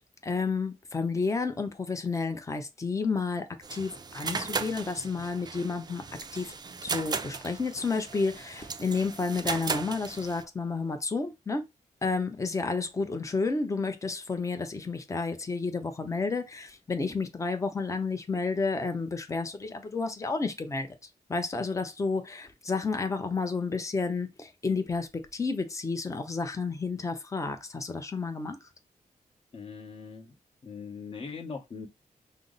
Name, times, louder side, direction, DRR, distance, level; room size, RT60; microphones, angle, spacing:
voice 1, 0.2-6.0 6.3-6.5 6.8-11.6 12.0-20.9 21.3-28.6, left 4 dB, 20° left, 0.6 m, -31 dB
sound 1, 3.6-10.4, right 5 dB, 30° right, 0.4 m, -36 dB
voice 2, 29.5-30.3 30.6-31.9, left 5 dB, 45° left, 1.0 m, -40 dB
5.5 x 2.0 x 3.9 m
wide cardioid pair, 150°, 14 cm